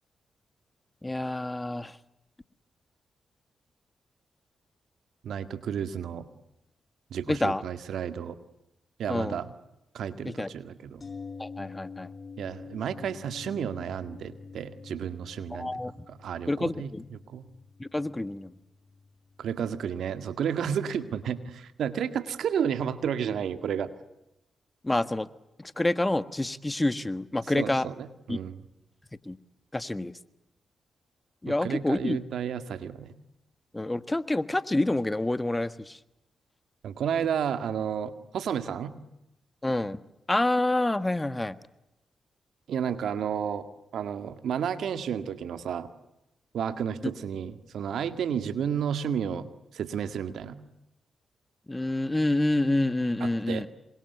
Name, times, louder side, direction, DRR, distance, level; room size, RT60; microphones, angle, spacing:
voice 1, 1.0-2.0 7.3-7.6 9.1-9.4 10.2-10.5 11.4-12.1 15.5-16.1 16.5-17.0 17.8-18.5 24.8-25.3 25.6-27.9 28.3-28.4 29.2-29.4 29.7-30.1 31.4-32.2 33.7-36.0 39.6-40.0 40.3-41.6 51.7-53.7, left 2 dB, 20° left, 14 dB, 1.5 m, -28 dB
voice 2, 5.2-6.3 7.1-8.4 9.0-9.5 9.9-11.0 12.4-15.7 16.1-17.4 19.4-23.9 27.5-28.6 31.5-33.1 36.8-38.9 42.7-45.9 46.5-49.5 49.7-50.6 53.2-53.6, right 8 dB, 75° right, 11 dB, 1.9 m, -32 dB
sound 1, 11.0-20.9 21.2-21.3, left 4 dB, 45° left, 3.7 m, -47 dB
27.5 x 25.0 x 8.1 m, 0.90 s
supercardioid pair, 45°, 0 cm